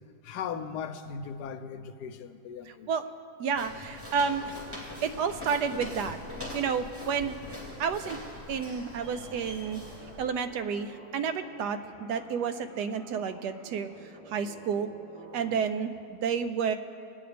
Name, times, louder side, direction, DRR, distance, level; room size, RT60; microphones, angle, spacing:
voice 1, 0.2-2.9, left 6 dB, 75° left, 9 dB, 1.2 m, -38 dB
voice 2, 2.7-3.0 3.4-4.6 5.0-6.2 6.5-7.3 7.8-8.2 8.5-9.8 10.2-13.9 14.3-14.9 15.3-16.7, right 6 dB, 75° right, 9 dB, 1.2 m, -30 dB
Walk footsteps, 3.5-10.2, left 1 dB, 5° right, 2.4 m, -42 dB
sound 1, 7.6-15.6, right 2 dB, 45° right, 4.1 m, -51 dB
21.5 x 9.3 x 3.4 m, 2.3 s
omnidirectional pair, 1.8 m